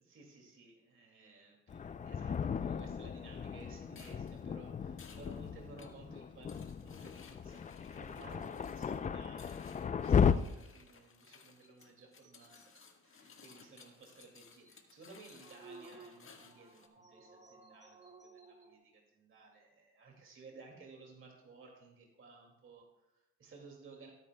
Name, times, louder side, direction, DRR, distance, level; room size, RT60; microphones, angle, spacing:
voice 1, 0.1-24.1, right 3 dB, 40° right, 0 dB, 2.2 m, -57 dB
Thunder, 1.7-10.3, left 7 dB, 25° left, 0.4 m, -35 dB
sound 1, 3.9-16.9, left 5 dB, 45° left, 1.6 m, -60 dB
sound 2, 11.6-12.9 13.4-13.5 13.8-13.9 14.2-14.3 14.6-14.7 15.1-18.8, right 3 dB, 25° right, 1.7 m, -57 dB
18.0 x 9.6 x 2.2 m, 0.96 s
cardioid pair, 90°, 30 cm